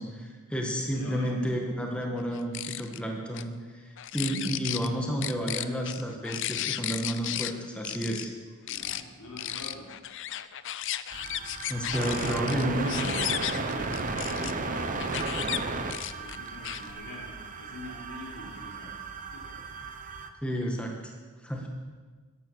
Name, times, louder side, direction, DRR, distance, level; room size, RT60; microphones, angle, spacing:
voice 1, 0.0-8.3 11.7-13.1 20.4-21.1 21.4-21.7, equal, 5° left, 1 dB, 1.6 m, -31 dB
voice 2, 0.9-1.4 4.6-5.0 8.6-9.9 12.1-18.9 19.3-19.6, left 1 dB, 85° left, -2 dB, 3.6 m, -45 dB
sound 1, 2.3-3.0 3.3-3.4 4.0-4.9 5.2-7.5 7.8-8.3 8.7-9.0 9.4-14.5 15.0-15.6 15.9-16.9, left 13 dB, 60° left, 0.5 m, -34 dB
sound 2, 11.1-20.3, right 3 dB, 40° right, 0.9 m, -34 dB
13.5 x 11.0 x 6.9 m, 1.4 s
head